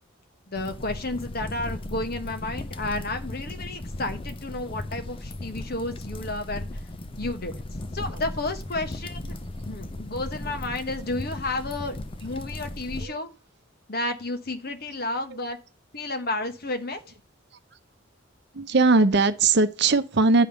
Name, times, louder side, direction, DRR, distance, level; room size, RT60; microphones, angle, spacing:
voice 1, 0.5-6.7 7.2-7.6 7.9-9.2 9.7-13.3 13.9-15.6 15.9-17.0, left 2 dB, 50° left, 1.2 m, -31 dB
sound 1, 0.6-13.1, left 1 dB, 25° left, 0.5 m, -36 dB
voice 2, 18.5-20.5, right 3 dB, 55° right, 0.7 m, -20 dB
10.5 x 3.6 x 6.8 m
head